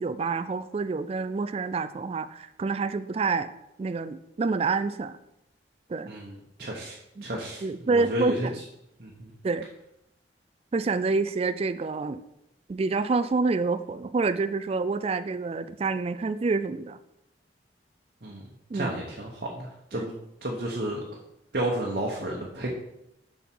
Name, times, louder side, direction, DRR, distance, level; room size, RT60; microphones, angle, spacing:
voice 1, 0.0-3.5 3.8-5.2 5.9-6.1 7.2-7.3 7.6-8.6 9.4-9.7 10.7-12.2 12.7-17.0 18.7-18.9 19.9-20.1, right 4 dB, 35° right, 13 dB, 0.3 m, -27 dB
voice 2, 6.1-8.6 9.0-9.3 18.2-20.1 20.4-21.0 21.5-22.7, right 1 dB, 55° right, -2 dB, 1.1 m, -32 dB
7.2 x 5.6 x 4.6 m, 0.84 s
head